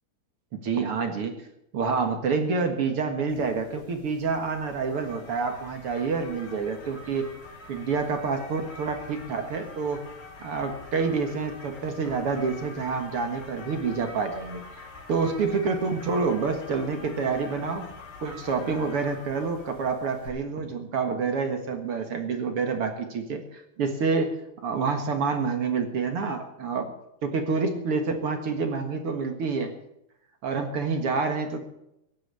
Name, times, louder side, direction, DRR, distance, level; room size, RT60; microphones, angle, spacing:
voice 1, 0.5-1.4 1.7-7.3 7.7-10.0 10.4-17.9 18.2-26.9 27.2-29.7 30.4-31.6, right 4 dB, 50° right, 6 dB, 1.9 m, -28 dB
sound 1, 3.3-20.3, left 3 dB, 75° left, 5.6 m, -46 dB
16.0 x 9.7 x 8.2 m, 0.83 s
omnidirectional pair, 4.1 m